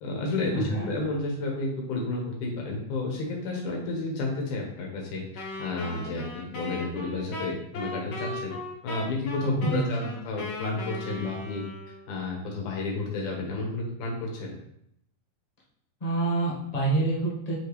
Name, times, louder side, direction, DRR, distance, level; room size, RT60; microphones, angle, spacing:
voice 1, 0.0-8.5 8.8-11.6 12.1-14.5, left 2 dB, 85° left, -1 dB, 2.8 m, -31 dB
voice 2, 0.5-0.9 9.6-9.9 16.0-17.6, right 2 dB, 40° left, -5 dB, 0.5 m, -27 dB
Wind instrument woodwind instrument, 5.4-12.2, left 3 dB, 60° left, 1.4 m, -37 dB
6.2 x 5.0 x 3.2 m, 0.76 s
omnidirectional pair, 3.4 m